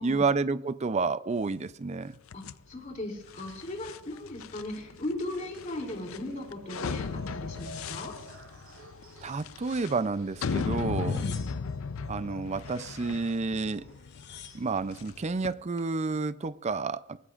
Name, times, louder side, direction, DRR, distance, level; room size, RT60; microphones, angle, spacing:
voice 1, 0.0-2.2 9.2-11.2 12.1-13.9 14.5-17.2, right 4 dB, 30° right, 0.4 m, -30 dB
sound 1, 2.3-15.5, left 5 dB, 70° left, 0.5 m, -37 dB
voice 2, 2.3-8.1 11.1-11.4, left 1 dB, 35° left, 3.2 m, -38 dB
sound 2, 5.3-14.0, equal, 80° right, 7.5 m, -50 dB
sound 3, 7.5-8.9 9.3-10.1 10.8-11.9 13.5-13.6 13.8-14.8 15.5-16.0, left 8 dB, 55° left, 2.2 m, -51 dB
23.5 x 18.5 x 2.5 m
head